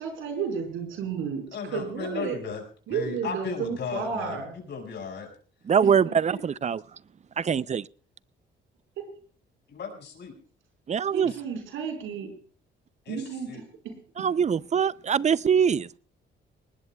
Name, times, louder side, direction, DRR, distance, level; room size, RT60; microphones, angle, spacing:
voice 1, 0.0-2.4 2.9-4.6 5.8-6.1 9.0-9.1 11.1-12.3 13.1-14.3, right 6 dB, 90° right, 4 dB, 4.8 m, -33 dB
voice 2, 1.5-2.6 2.9-5.3 9.7-10.3 11.2-11.4 13.1-13.6, left 5 dB, 60° left, 3 dB, 5.9 m, -36 dB
voice 3, 5.7-6.8 7.4-7.8 10.9-11.3 14.2-16.0, right 7 dB, 35° right, 19 dB, 0.5 m, -23 dB
20.5 x 19.5 x 2.3 m, 0.43 s
cardioid pair, 90°, 20 cm